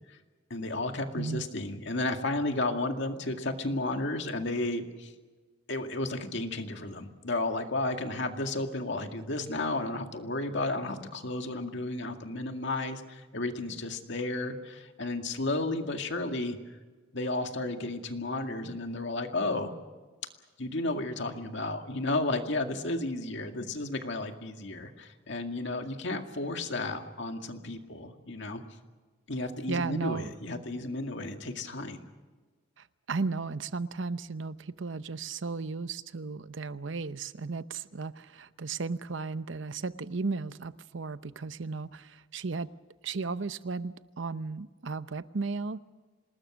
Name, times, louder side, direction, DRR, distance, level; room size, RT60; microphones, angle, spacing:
voice 1, 0.5-5.1 5.7-16.6 17.1-19.7 20.6-28.6 29.3-32.0, left 2 dB, 65° left, 5 dB, 2.1 m, -33 dB
voice 2, 1.2-1.5 29.7-30.3 32.8-42.7 43.0-45.8, right 4 dB, 70° right, 14 dB, 0.8 m, -35 dB
27.0 x 20.0 x 6.3 m, 1.3 s
head